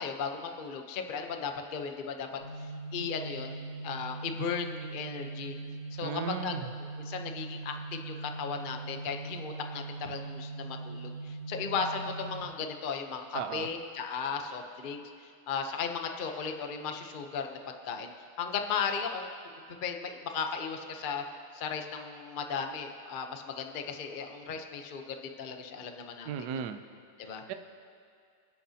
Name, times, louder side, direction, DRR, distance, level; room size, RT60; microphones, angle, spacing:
voice 1, 0.0-2.3 2.6-5.5 5.9-6.5 7.0-18.1 18.4-19.3 19.8-21.2 21.5-26.3 27.2-27.4, left 6 dB, 90° left, 4 dB, 0.4 m, -36 dB
sound 1, 2.4-12.4, right 3 dB, 45° left, 4.2 m, -41 dB
voice 2, 6.0-6.7 13.3-13.7 26.2-26.8 27.2-27.5, right 8 dB, 70° right, 8 dB, 1.0 m, -36 dB
29.5 x 10.0 x 2.9 m, 2.4 s
omnidirectional pair, 2.4 m